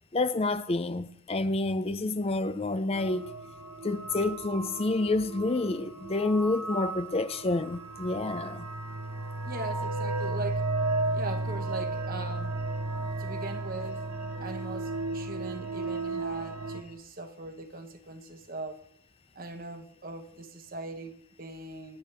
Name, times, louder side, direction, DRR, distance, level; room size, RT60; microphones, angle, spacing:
voice 1, 0.1-3.3 3.8-8.6, left 2 dB, 25° left, 0.5 m, -28 dB
sound 1, 2.9-16.8, right 2 dB, 85° right, 1.5 m, -34 dB
voice 2, 9.4-10.8 11.1-12.6 13.2-14.0 14.4-18.9 19.3-22.0, right 2 dB, 40° right, 1.2 m, -40 dB
26.5 x 10.5 x 3.4 m
head